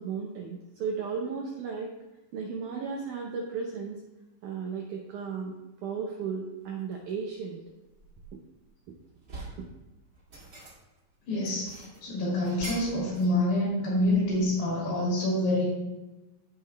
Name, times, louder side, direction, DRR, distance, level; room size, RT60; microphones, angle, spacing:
voice 1, 0.0-1.9 2.3-4.0 4.4-5.6 5.8-7.6, right 5 dB, 80° right, 1 dB, 1.8 m, -34 dB
sound 1, 6.9-7.2 7.7-8.7 9.0-9.7 10.1-11.0 11.4-13.4 13.6-14.6, right 2 dB, 30° right, 1.9 m, -44 dB
voice 2, 11.3-11.7 12.0-15.6, left 1 dB, 80° left, -6 dB, 5.0 m, -26 dB
14.5 x 5.6 x 2.2 m, 1.1 s
omnidirectional pair, 4.6 m